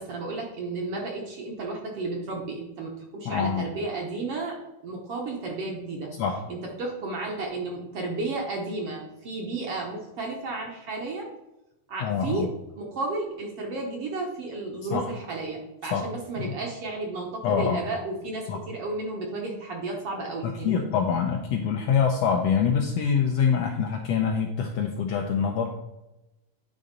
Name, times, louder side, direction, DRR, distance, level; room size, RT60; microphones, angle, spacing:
voice 1, 0.0-4.6 4.8-6.1 6.5-11.3 11.9-12.5 12.8-20.8, right 3 dB, 60° right, 0 dB, 1.7 m, -33 dB
voice 2, 3.2-3.6 6.2-6.3 12.0-12.5 14.9-15.0 15.9-16.0 16.4-16.5 17.4-17.8 18.5-18.6 20.6-25.7, left 7 dB, 75° left, 2 dB, 1.5 m, -25 dB
9.8 x 3.8 x 5.2 m, 0.94 s
omnidirectional pair, 3.7 m